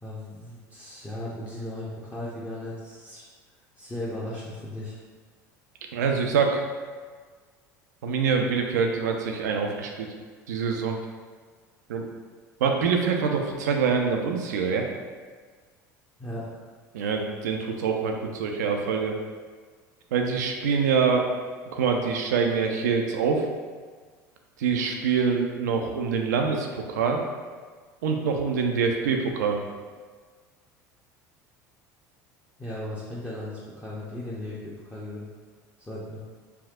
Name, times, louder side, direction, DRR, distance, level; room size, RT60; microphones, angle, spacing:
voice 1, 0.0-3.2 3.8-5.0 16.2-16.6 32.6-35.3 35.8-36.2, left 1 dB, 15° left, -8 dB, 0.6 m, -36 dB
voice 2, 5.9-6.6 8.0-10.1 10.5-11.0 11.9-12.1 12.6-14.9 16.9-19.2 20.1-21.3 21.7-23.5 24.6-27.2 28.0-29.6, right 5 dB, 85° right, 3 dB, 0.4 m, -25 dB
3.4 x 2.7 x 2.4 m, 1.6 s
hypercardioid pair, 75°, 9 cm